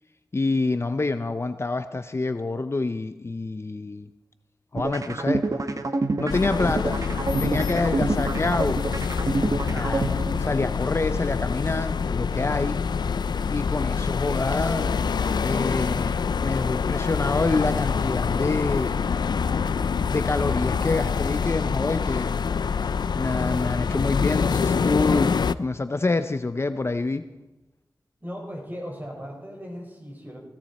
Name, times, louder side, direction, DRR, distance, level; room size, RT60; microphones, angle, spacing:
voice 1, 0.3-4.1 4.7-5.4 6.2-7.0 7.4-8.8 9.6-12.8 13.5-15.0 15.4-19.0 20.1-22.4 22.8-22.9 23.1-27.3, left 3 dB, 35° left, 10 dB, 0.6 m, -27 dB
sound 1, 4.8-10.8, right 3 dB, 50° right, 1.1 m, -27 dB
sound 2, 6.3-25.5, left 6 dB, 80° left, 0.4 m, -26 dB
voice 2, 28.2-30.4, equal, 25° right, -1 dB, 5.3 m, -37 dB
17.5 x 16.5 x 4.2 m, 1.0 s
wide cardioid pair, 75°, 7 cm